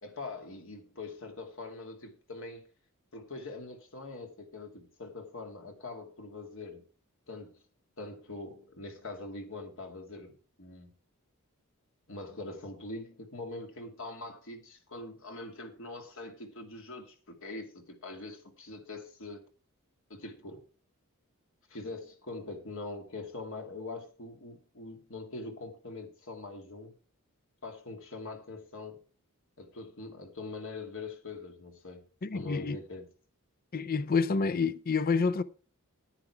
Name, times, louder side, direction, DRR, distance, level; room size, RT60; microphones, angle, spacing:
voice 1, 0.0-2.7 3.1-6.8 7.3-7.6 8.0-10.9 12.1-19.4 20.1-20.7 21.7-26.9 27.6-29.0 29.6-32.1 32.3-33.1, left 2 dB, 65° left, 2.5 m, -43 dB
voice 2, 32.2-32.8 33.7-35.4, left 4 dB, 40° left, 0.5 m, -28 dB
10.0 x 9.9 x 4.6 m
head